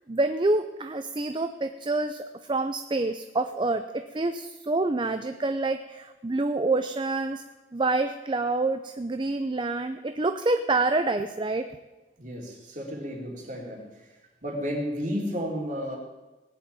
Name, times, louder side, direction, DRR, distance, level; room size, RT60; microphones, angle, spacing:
voice 1, 0.1-7.4 7.7-11.7, right 2 dB, 25° right, 8 dB, 0.6 m, -27 dB
voice 2, 12.2-16.0, equal, 45° right, 0 dB, 3.5 m, -33 dB
18.5 x 7.3 x 9.0 m, 1.1 s
head